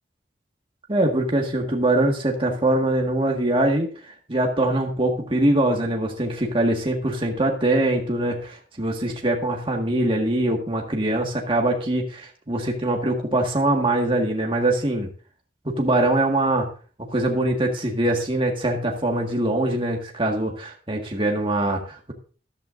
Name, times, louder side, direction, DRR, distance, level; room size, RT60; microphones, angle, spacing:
voice 1, 0.9-3.9 4.3-15.1 15.6-16.7 17.1-22.1, right 1 dB, 30° right, 1 dB, 1.8 m, -23 dB
14.0 x 11.5 x 2.6 m, 0.39 s
head